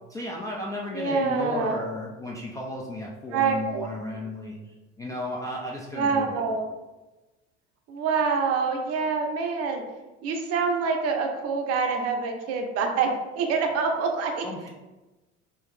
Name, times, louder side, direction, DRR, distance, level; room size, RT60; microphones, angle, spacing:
voice 1, 0.1-6.4 14.4-14.7, left 1 dB, 10° left, -3 dB, 0.3 m, -34 dB
voice 2, 0.9-1.9 3.3-3.9 5.9-6.7 7.9-9.8 10.2-13.1 13.3-14.4, right 5 dB, 45° right, 4 dB, 0.6 m, -26 dB
3.0 x 2.8 x 3.4 m, 1.1 s
figure-of-eight pair, 60°, 37 cm